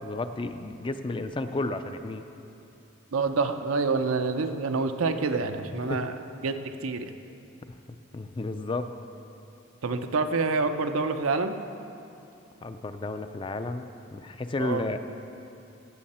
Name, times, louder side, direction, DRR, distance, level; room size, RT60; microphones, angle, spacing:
voice 1, 0.0-2.2 5.9-6.1 7.9-8.9 12.6-15.0, left 2 dB, 25° left, 9 dB, 0.3 m, -32 dB
voice 2, 3.1-6.2 6.4-7.1 9.8-11.6 14.6-14.8, right 4 dB, 85° right, 7 dB, 0.6 m, -27 dB
17.0 x 7.5 x 4.3 m, 2.7 s
head